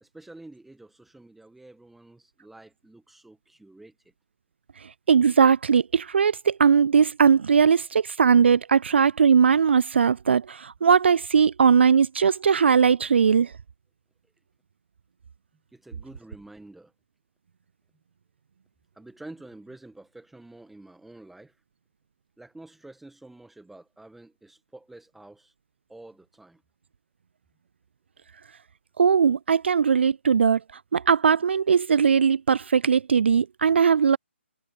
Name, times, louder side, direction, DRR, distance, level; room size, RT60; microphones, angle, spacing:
voice 1, 0.0-3.9 15.7-16.9 18.9-21.6 22.4-25.5 25.9-26.6, right 2 dB, ahead, 1.4 m, -48 dB
voice 2, 5.1-13.5 29.0-30.6 30.9-34.2, right 6 dB, 60° right, 0.3 m, -19 dB
figure-of-eight pair, 145°, 7 cm